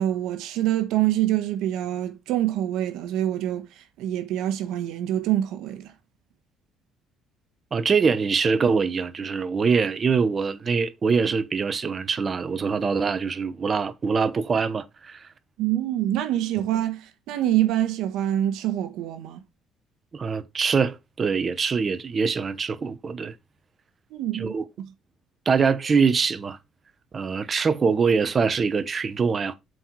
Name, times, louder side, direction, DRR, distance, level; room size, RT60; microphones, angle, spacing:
voice 1, 0.0-5.9 15.6-19.4 24.1-24.5, right 13 dB, 85° right, 1.1 m, -25 dB
voice 2, 7.7-15.3 20.1-23.3 24.3-24.6 25.4-26.6 27.1-29.5, right 5 dB, 35° right, 0.9 m, -24 dB
7.7 x 4.5 x 4.6 m
cardioid pair, 115°, 0 cm